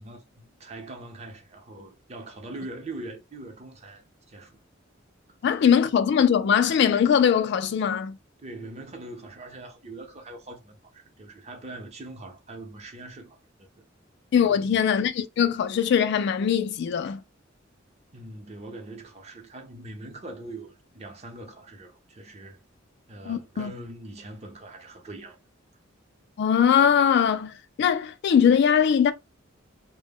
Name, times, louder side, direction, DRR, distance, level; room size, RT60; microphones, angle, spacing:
voice 1, 0.0-4.6 8.4-13.7 14.4-14.8 18.1-22.6 23.1-25.4, right 2 dB, 35° right, 0.7 m, -42 dB
voice 2, 5.4-8.2 14.3-17.2 23.3-23.7 26.4-29.1, left 8 dB, 60° left, 0.3 m, -21 dB
2.1 x 2.1 x 3.4 m
head